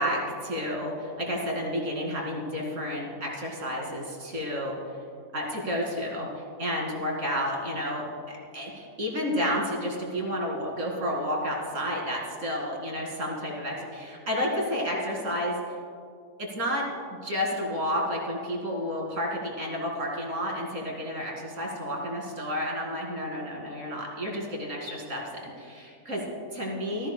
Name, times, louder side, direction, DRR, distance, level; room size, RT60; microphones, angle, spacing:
voice 1, 0.0-4.8 5.3-15.6 16.4-27.1, equal, 65° right, -2 dB, 2.8 m, -31 dB
19.0 x 14.0 x 2.2 m, 2.4 s
omnidirectional pair, 1.5 m